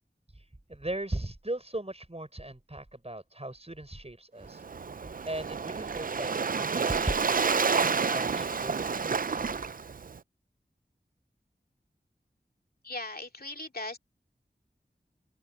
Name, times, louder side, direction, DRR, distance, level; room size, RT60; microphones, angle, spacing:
voice 1, 0.7-4.6 5.0-7.5 8.1-9.5, right 1 dB, 35° right, 6.5 m, -38 dB
Waves surf, 4.5-10.2, right 5 dB, 50° right, 0.4 m, -29 dB
voice 2, 12.8-14.0, left 2 dB, 55° left, 2.5 m, -38 dB
open air
wide cardioid pair, 40°, 18 cm